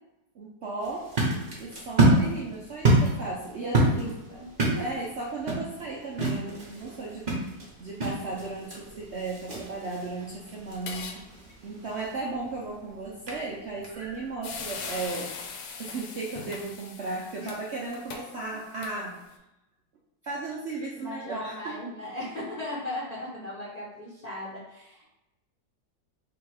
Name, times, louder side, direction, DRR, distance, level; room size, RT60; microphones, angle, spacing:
voice 1, 0.4-1.1 1.6-4.2 4.8-7.3 7.8-11.2 11.6-15.3 15.8-19.2 20.2-21.8, right 3 dB, 75° right, -4 dB, 0.6 m, -35 dB
sound 1, 0.8-14.3, right 2 dB, 40° right, 0.8 m, -29 dB
voice 2, 3.6-4.9 11.6-11.9 17.4-17.5 18.8-18.9 20.9-25.0, left 1 dB, 30° left, -7 dB, 0.8 m, -38 dB
sound 2, 10.7-11.2 11.5-11.6 13.9-14.1 14.4-19.3, left 5 dB, 80° left, 1.3 m, -40 dB
3.5 x 2.9 x 4.8 m, 0.92 s
omnidirectional pair, 2.0 m